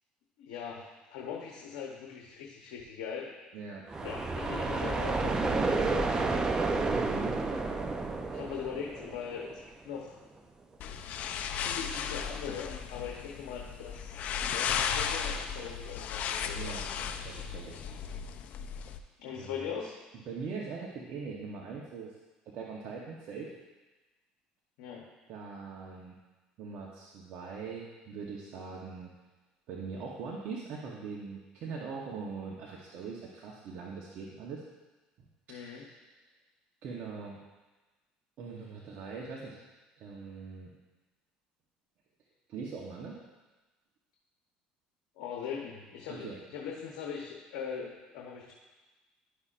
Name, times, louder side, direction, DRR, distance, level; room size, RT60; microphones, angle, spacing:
voice 1, 0.4-3.3 4.0-5.3 5.7-6.8 8.3-10.2 11.5-14.2 14.5-16.8 19.2-20.0 24.8-25.1 35.5-35.8 45.2-48.5, left 7 dB, 80° left, -1 dB, 0.9 m, -41 dB
voice 2, 3.5-3.8 6.9-7.4 16.5-17.8 19.4-19.6 20.2-22.1 22.5-23.5 25.3-26.2 26.6-29.1 29.7-34.6 35.2-35.3 35.6-36.1 36.8-37.4 38.4-39.6 40.0-40.7 42.5-43.2 46.1-46.4, right 5 dB, 60° right, -2 dB, 1.0 m, -41 dB
sound 1, 3.9-9.6, right 3 dB, 20° right, 0.6 m, -31 dB
sound 2, 10.8-19.0, left 7 dB, 55° left, 0.5 m, -35 dB
11.5 x 5.5 x 2.5 m, 1.2 s
supercardioid pair, 90°, 3 cm